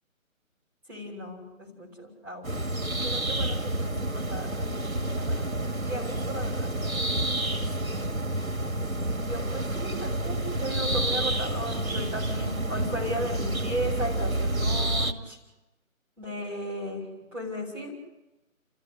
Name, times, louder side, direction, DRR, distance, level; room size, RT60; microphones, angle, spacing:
voice 1, 0.9-2.6 3.0-6.7 7.5-8.1 9.2-15.4 16.2-17.9, equal, 5° right, -5 dB, 3.0 m, -36 dB
sound 1, 2.4-15.1, right 1 dB, 75° right, 2.1 m, -29 dB
29.5 x 14.5 x 8.1 m, 1.0 s
figure-of-eight pair, 155°, 41 cm